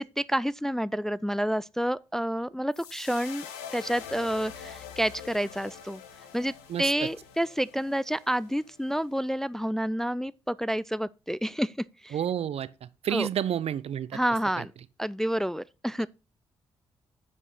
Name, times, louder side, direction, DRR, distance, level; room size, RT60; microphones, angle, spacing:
voice 1, 0.0-3.5 3.7-6.0 6.3-6.5 6.8-11.7 12.0-12.2 13.1-13.3 14.1-14.7 15.0-16.1, equal, 5° left, 0.3 m, -29 dB
sound 1, 2.7-9.0, left 8 dB, 85° left, 1.0 m, -45 dB
voice 2, 12.1-14.2 14.6-14.7, right 9 dB, 60° right, 0.6 m, -30 dB
9.7 x 5.5 x 4.1 m
hypercardioid pair, 40°, 12 cm